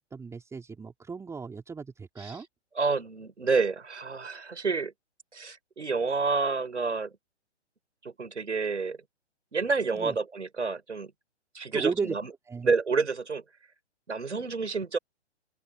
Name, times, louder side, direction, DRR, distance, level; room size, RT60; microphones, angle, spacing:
voice 1, 0.1-2.5 9.9-10.2 11.7-12.2 12.5-12.7, right 5 dB, 10° right, 3.8 m, -35 dB
voice 2, 2.8-4.9 5.3-7.1 8.0-9.0 9.5-11.1 11.5-12.3 12.6-13.4 14.1-15.0, right 4 dB, 80° right, 6.2 m, -29 dB
figure-of-eight pair, 130°, 35 cm